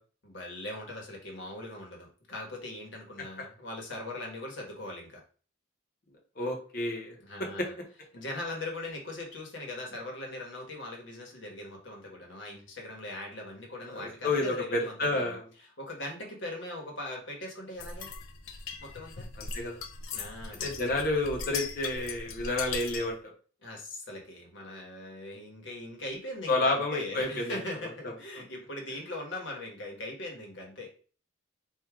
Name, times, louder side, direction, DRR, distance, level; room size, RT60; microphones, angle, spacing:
voice 1, 0.2-5.2 7.2-7.7 8.1-15.4 15.8-18.1 18.8-19.3 20.1-20.7 23.6-30.9, left 1 dB, 60° left, 0 dB, 1.4 m, -40 dB
voice 2, 6.4-7.7 13.8-15.4 19.4-19.8 20.6-23.2 26.5-27.6, left 2 dB, 45° left, 1 dB, 1.1 m, -30 dB
sound 1, 17.8-23.2, left 5 dB, 90° left, 0.6 m, -39 dB
4.6 x 2.6 x 3.6 m, 0.41 s
head